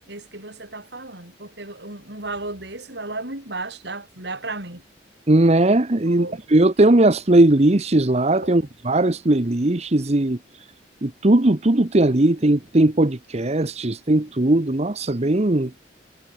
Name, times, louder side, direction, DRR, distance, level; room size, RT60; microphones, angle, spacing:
voice 1, 0.1-4.8 6.0-6.4 8.4-8.6, right 2 dB, 60° right, 6.4 m, -34 dB
voice 2, 5.3-10.4 11.0-15.7, right 1 dB, 35° right, 1.0 m, -18 dB
head